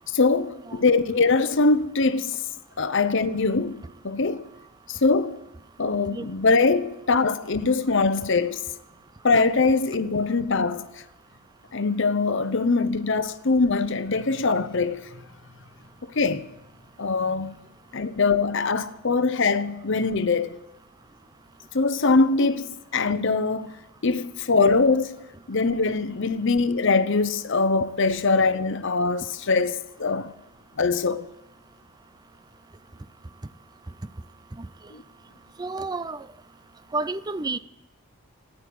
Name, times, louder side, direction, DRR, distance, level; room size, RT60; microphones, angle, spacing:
voice 1, 0.1-2.3 2.8-4.4 4.9-5.4 5.8-8.6 9.2-10.9 11.7-15.0 16.2-16.4 17.0-17.5 17.9-20.6 21.7-23.7 24.0-25.1 25.5-30.3 30.8-31.2 34.9-35.0, left 3 dB, 60° left, 0.8 m, -22 dB
voice 2, 35.6-36.3 36.9-37.6, right 3 dB, 20° right, 0.5 m, -30 dB
13.5 x 9.7 x 8.5 m
head